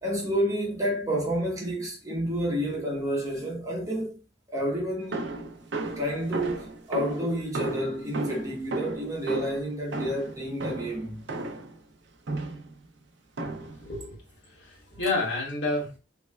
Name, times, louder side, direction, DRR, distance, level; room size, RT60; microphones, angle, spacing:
voice 1, 0.0-4.2 4.5-5.2 6.0-11.3, equal, 20° right, 1.1 m, -30 dB
sound 1, 5.1-11.8 12.3-12.7 13.4-13.9, right 2 dB, 70° right, 0.6 m, -34 dB
voice 2, 13.6-14.2 14.5-16.0, left 2 dB, 70° left, 1.8 m, -30 dB
3.4 x 3.1 x 2.3 m
head